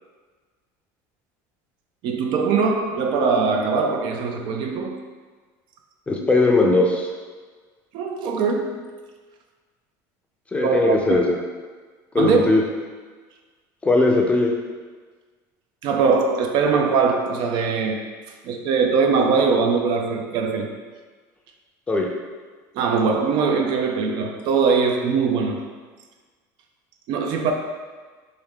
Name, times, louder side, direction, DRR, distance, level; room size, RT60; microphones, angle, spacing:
voice 1, 2.0-5.0 7.9-8.8 10.6-11.2 12.2-12.4 15.8-18.1 18.4-20.7 22.7-25.7 27.1-27.5, right 5 dB, 60° right, 3 dB, 0.4 m, -21 dB
voice 2, 6.1-7.1 10.5-11.4 12.1-12.6 13.8-14.5 21.9-22.1, left 2 dB, 15° left, 0 dB, 0.5 m, -19 dB
3.4 x 2.6 x 3.5 m, 1.4 s
supercardioid pair, 125°, 9 cm